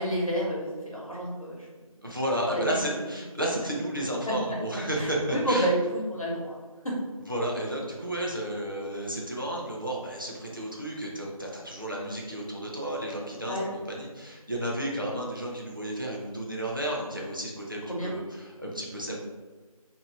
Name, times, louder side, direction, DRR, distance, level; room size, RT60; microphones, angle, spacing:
voice 1, 0.0-1.6 5.0-6.5 6.8-6.9 13.5-13.6 17.9-18.1, right 1 dB, 65° left, -4 dB, 1.2 m, -29 dB
voice 2, 2.0-5.7 7.2-19.2, right 1 dB, 35° right, -2 dB, 0.5 m, -32 dB
2.8 x 2.6 x 3.1 m, 1.3 s
figure-of-eight pair, 180°, 19 cm